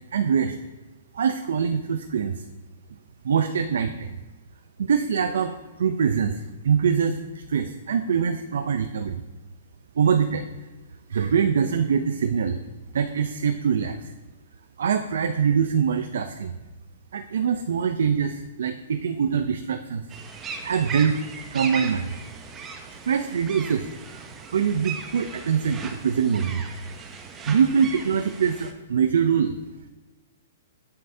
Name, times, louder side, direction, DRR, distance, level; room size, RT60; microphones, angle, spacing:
voice 1, 0.1-0.5 1.1-2.4 3.2-4.2 4.8-9.2 10.0-10.5 11.1-12.6 12.9-14.1 14.8-16.5 17.1-20.0 20.6-21.2 21.5-22.3 23.1-23.9 24.5-26.7 27.5-29.5, right 7 dB, 75° right, 8 dB, 0.4 m, -24 dB
sound 1, 20.1-28.7, right 5 dB, 15° right, 0.6 m, -38 dB
7.6 x 7.6 x 2.7 m, 1.2 s
hypercardioid pair, 155°, 0 cm